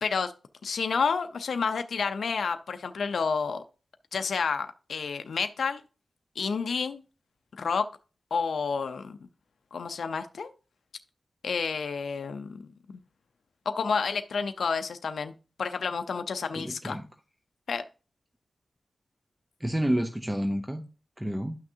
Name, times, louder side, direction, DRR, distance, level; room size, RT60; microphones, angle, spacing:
voice 1, 0.0-0.3 0.6-3.6 4.1-5.8 6.4-7.0 7.5-7.9 8.3-9.3 9.7-10.5 11.4-12.6 12.9-13.0 13.7-17.0 17.7-17.8, left 5 dB, 75° left, 8 dB, 0.6 m, -30 dB
voice 2, 16.6-17.1 19.6-20.8 21.2-21.6, equal, 10° right, 5 dB, 0.7 m, -29 dB
10.5 x 6.0 x 2.7 m, 0.35 s
wide cardioid pair, 100°, 0 cm